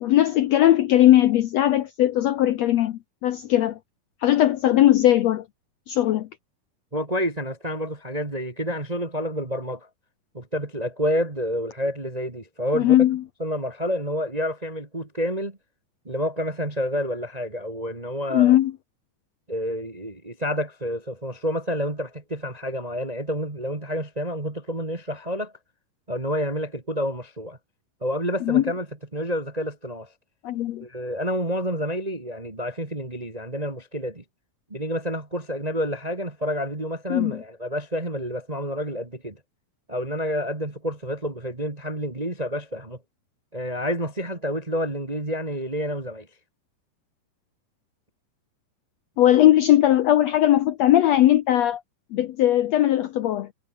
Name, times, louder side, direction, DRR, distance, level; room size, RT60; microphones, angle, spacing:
voice 1, 0.0-3.8 4.2-5.4 5.9-6.3 12.7-13.2 18.3-18.7 28.5-28.6 30.4-30.8 37.1-37.4 49.2-51.8 52.1-53.5, left 13 dB, 70° left, 1.6 m, -19 dB
voice 2, 6.9-9.9 10.3-13.1 13.4-15.6 16.0-18.6 19.5-25.5 26.1-27.6 28.0-28.9 29.1-30.1 30.8-34.2 34.7-39.4 39.9-43.0 43.5-46.3, equal, 20° right, 1.2 m, -29 dB
omnidirectional pair, 3.9 m